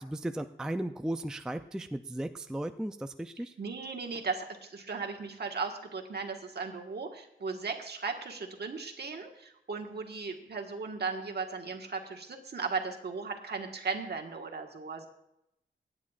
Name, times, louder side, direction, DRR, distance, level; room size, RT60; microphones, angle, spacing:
voice 1, 0.0-3.5, right 1 dB, 5° right, 8 dB, 0.3 m, -36 dB
voice 2, 3.6-15.1, right 4 dB, 55° right, 3 dB, 1.5 m, -37 dB
25.0 x 9.5 x 2.4 m, 0.83 s
wide cardioid pair, 145°, 20 cm